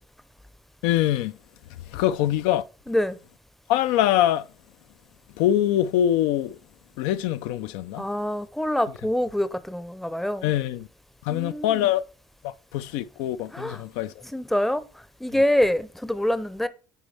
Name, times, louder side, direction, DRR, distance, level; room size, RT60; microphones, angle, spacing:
voice 1, 0.8-1.4 1.9-2.6 3.7-4.5 5.4-6.6 7.0-8.1 10.4-10.9 11.2-12.0 12.4-14.1, left 12 dB, 85° left, 0.4 m, -23 dB
voice 2, 2.9-3.2 8.0-10.5 11.3-11.9 13.5-13.8 14.3-16.7, left 1 dB, ahead, 0.6 m, -26 dB
9.1 x 4.5 x 3.3 m
cardioid pair, 105°, 8 cm